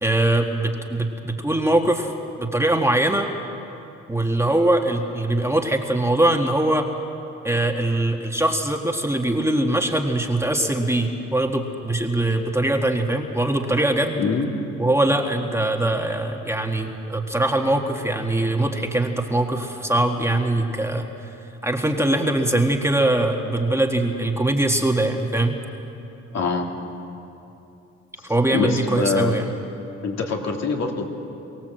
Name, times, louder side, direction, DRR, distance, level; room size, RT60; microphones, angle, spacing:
voice 1, 0.0-2.1 2.4-3.3 4.1-6.9 7.4-14.2 14.8-21.1 21.6-25.6 28.2-29.4, right 1 dB, 10° right, 3 dB, 1.7 m, -22 dB
voice 2, 14.2-14.5 26.3-26.7 28.5-29.4 30.0-31.1, left 4 dB, 60° left, 1 dB, 2.6 m, -24 dB
23.5 x 17.0 x 7.8 m, 2.8 s
cardioid pair, 90°, 30 cm